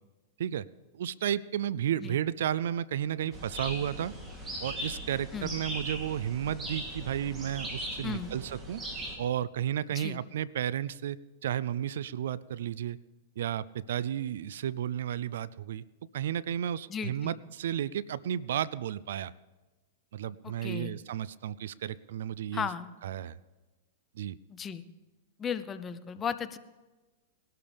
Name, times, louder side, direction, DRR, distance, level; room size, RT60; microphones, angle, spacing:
voice 1, 0.9-4.1 4.6-8.8 9.2-13.0 13.4-15.8 16.1-19.3 20.1-22.7 23.0-23.4 24.2-24.4, right 10 dB, 75° right, 20 dB, 0.4 m, -33 dB
sound 1, 3.3-9.2, right 1 dB, 20° right, 2.9 m, -39 dB
voice 2, 16.9-17.4 20.4-20.9 22.5-22.9 24.5-24.8 25.4-26.6, left 7 dB, 20° left, 12 dB, 0.7 m, -35 dB
20.5 x 12.5 x 3.5 m, 1.2 s
hypercardioid pair, 130°, 0 cm